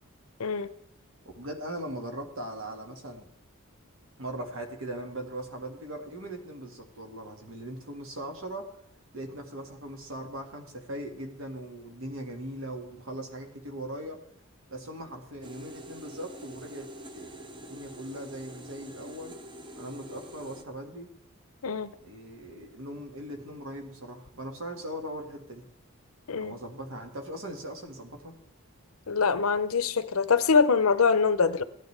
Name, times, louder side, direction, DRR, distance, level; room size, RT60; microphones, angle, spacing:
voice 1, 1.3-3.3 4.2-8.7 9.1-14.2 14.7-19.4 19.8-21.1 22.0-25.7 26.4-28.4, right 1 dB, 70° right, 3 dB, 1.9 m, -39 dB
sound 1, 15.4-20.6, right 1 dB, 20° right, 0.7 m, -45 dB
voice 2, 29.1-31.6, left 5 dB, 80° left, 13 dB, 0.7 m, -24 dB
16.5 x 10.5 x 3.4 m, 0.75 s
head